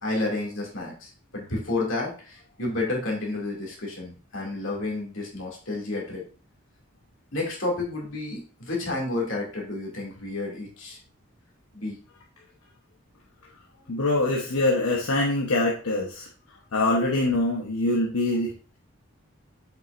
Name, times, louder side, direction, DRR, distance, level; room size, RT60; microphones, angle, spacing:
voice 1, 0.0-6.2 7.3-11.0 11.7-12.0 13.8-13.9, left 2 dB, 60° left, -2 dB, 2.5 m, -31 dB
voice 2, 13.9-16.3 16.7-18.5, left 2 dB, 80° left, -2 dB, 1.1 m, -24 dB
7.5 x 5.8 x 2.6 m, 0.37 s
head